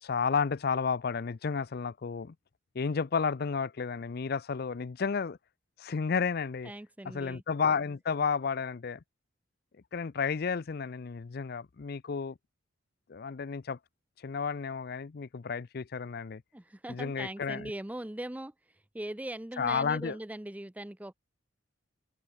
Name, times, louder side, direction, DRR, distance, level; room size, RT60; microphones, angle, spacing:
voice 1, 0.0-2.3 2.7-5.4 5.8-6.7 7.1-9.0 9.9-12.4 13.1-13.8 14.2-16.4 16.9-17.7 19.6-20.2, left 5 dB, 50° left, 0.5 m, -32 dB
voice 2, 6.6-7.4 16.5-21.1, right 1 dB, 10° right, 0.5 m, -40 dB
open air
head